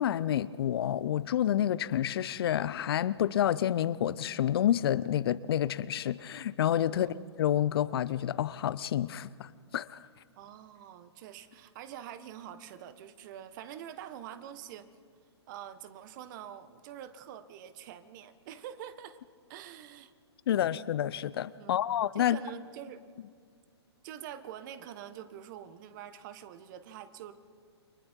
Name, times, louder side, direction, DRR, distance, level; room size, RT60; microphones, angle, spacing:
voice 1, 0.0-10.0 20.5-22.4, left 11 dB, 60° left, 18 dB, 0.6 m, -29 dB
voice 2, 10.4-14.9 15.5-19.2 19.5-20.1 21.6-21.8 22.1-23.0 24.0-27.3, right 10 dB, 45° right, 12 dB, 1.4 m, -45 dB
30.0 x 23.5 x 4.6 m, 2.1 s
hypercardioid pair, 125°, 14 cm